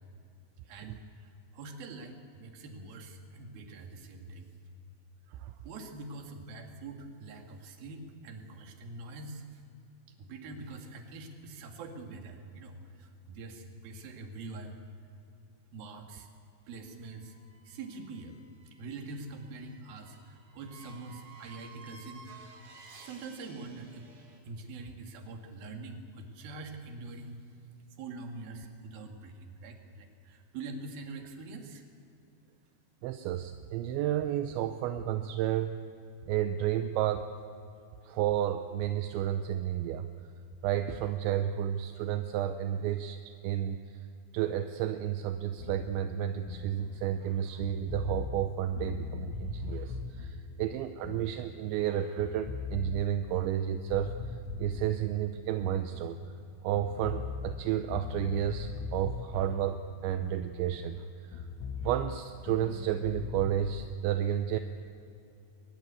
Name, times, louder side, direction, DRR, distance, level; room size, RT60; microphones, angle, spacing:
voice 1, 0.6-4.5 5.3-9.6 10.2-14.8 15.7-16.3 16.7-17.4 17.7-18.4 18.7-22.3 23.0-24.1 24.4-27.4 28.0-31.8, right 3 dB, 55° right, 3 dB, 3.5 m, -44 dB
sound 1, 16.7-24.4, right 3 dB, 35° right, 3.4 m, -55 dB
voice 2, 33.0-35.8 36.3-37.3 38.1-40.1 40.6-43.2 43.4-43.8 44.3-54.2 54.6-56.2 56.6-61.0 61.3-61.4 61.8-64.6, right 11 dB, 80° right, 8 dB, 2.9 m, -31 dB
sound 2, 45.6-51.9 52.2-56.5 56.8-61.0 61.3-63.9, left 5 dB, 75° left, 3.4 m, -41 dB
23.5 x 21.0 x 8.4 m, 2.5 s
omnidirectional pair, 5.7 m